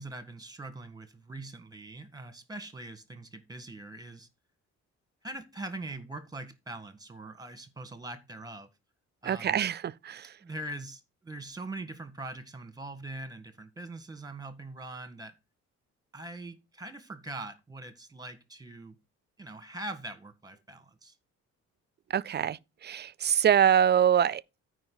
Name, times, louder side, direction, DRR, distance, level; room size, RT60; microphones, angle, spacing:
voice 1, 0.0-4.3 5.2-8.7 9.2-9.6 10.4-15.3 16.1-19.0 19.4-21.1, right 2 dB, 10° right, 1.6 m, -42 dB
voice 2, 9.2-10.3 22.1-24.6, right 9 dB, 35° right, 0.4 m, -25 dB
12.5 x 5.1 x 3.9 m
cardioid pair, 90°, 30 cm